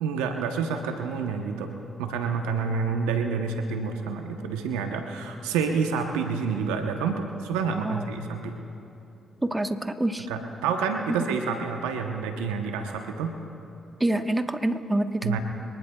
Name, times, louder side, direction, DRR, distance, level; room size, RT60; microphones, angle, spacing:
voice 1, 0.0-1.7 2.0-8.5 10.3-13.3 15.2-15.4, right 5 dB, 90° right, 5 dB, 0.9 m, -28 dB
voice 2, 9.4-10.3 14.0-15.4, right 1 dB, 20° right, 7 dB, 1.2 m, -26 dB
24.5 x 19.5 x 2.3 m, 2.9 s
hypercardioid pair, 45°, 0 cm